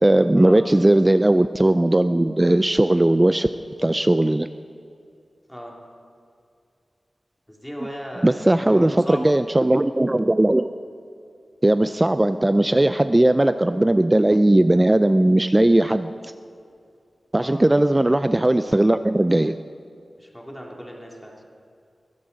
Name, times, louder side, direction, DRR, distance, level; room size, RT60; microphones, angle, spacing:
voice 1, 0.0-3.5 3.8-4.5 8.2-10.7 11.6-16.1 17.3-19.6, right 1 dB, 20° right, 11 dB, 0.4 m, -18 dB
voice 2, 7.5-9.4 17.4-17.6 20.2-21.3, equal, 5° left, -2 dB, 2.6 m, -36 dB
21.5 x 15.0 x 4.0 m, 2.4 s
wide cardioid pair, 105°, 0 cm